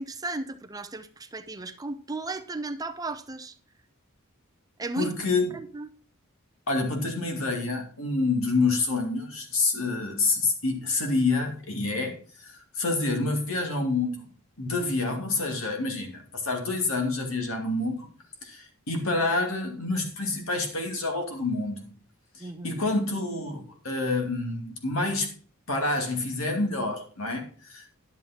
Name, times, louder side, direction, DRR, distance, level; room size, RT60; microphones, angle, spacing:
voice 1, 0.0-3.5 4.8-5.1 5.5-5.9 22.4-22.8, right 2 dB, 20° right, 0.6 m, -35 dB
voice 2, 5.0-5.5 6.7-14.3 14.6-18.1 18.4-21.9 22.3-25.3 25.7-27.9, left 3 dB, 75° left, 2.6 m, -28 dB
11.0 x 7.2 x 4.4 m
head